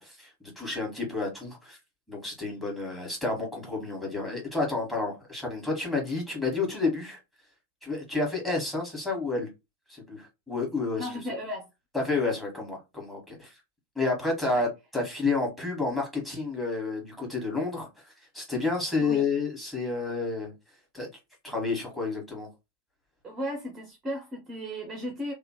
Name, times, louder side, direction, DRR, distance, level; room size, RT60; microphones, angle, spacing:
voice 1, 0.0-1.8 2.1-7.2 7.8-9.5 9.9-11.1 11.9-13.5 13.9-14.7 14.9-20.5 20.9-21.1 21.4-22.5, left 3 dB, 5° left, 1.4 m, -30 dB
voice 2, 11.0-11.7 14.5-14.7 19.0-19.2 23.2-25.3, equal, 20° right, 0.7 m, -35 dB
2.8 x 2.1 x 2.9 m
figure-of-eight pair, 90°, 0 cm